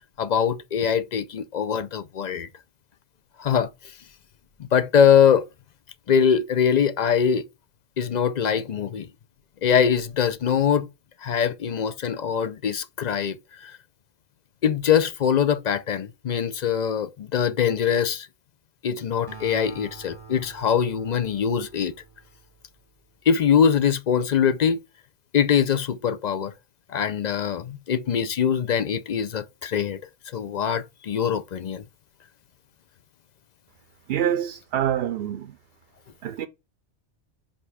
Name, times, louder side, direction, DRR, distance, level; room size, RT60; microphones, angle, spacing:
voice 1, 0.2-2.5 3.4-3.7 4.7-5.4 6.1-7.4 8.0-9.1 9.6-10.9 11.2-13.8 14.6-18.3 18.8-21.9 23.3-24.8 25.3-26.5 26.9-30.0 30.3-31.8, left 7 dB, 50° left, 0.6 m, -22 dB
Acoustic guitar, 19.3-22.9, right 4 dB, 25° right, 0.9 m, -46 dB
voice 2, 34.1-35.6 36.2-36.5, right 10 dB, 65° right, 0.7 m, -26 dB
5.2 x 5.0 x 4.9 m
omnidirectional pair, 1.1 m